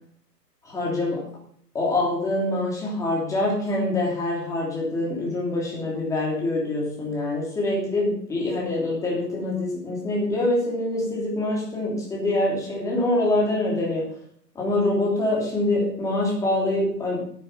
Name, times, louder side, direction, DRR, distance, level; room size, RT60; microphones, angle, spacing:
voice 1, 0.6-1.2 1.7-14.1 14.5-17.3, left 2 dB, 5° left, -4 dB, 3.1 m, -25 dB
9.8 x 9.7 x 5.7 m, 0.62 s
figure-of-eight pair, 145°, 49 cm